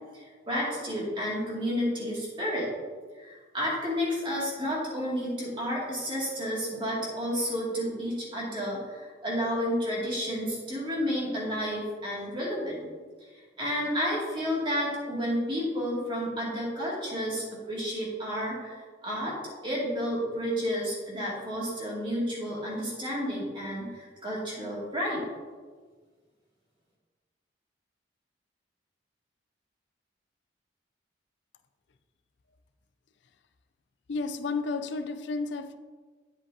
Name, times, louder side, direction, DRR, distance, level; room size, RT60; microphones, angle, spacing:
voice 1, 0.1-2.7 3.2-12.8 13.6-18.7 19.0-19.4 19.6-25.2, equal, 25° right, -5 dB, 2.4 m, -31 dB
voice 2, 34.1-35.8, left 3 dB, 70° left, 9 dB, 0.5 m, -32 dB
9.9 x 7.8 x 2.8 m, 1.5 s
head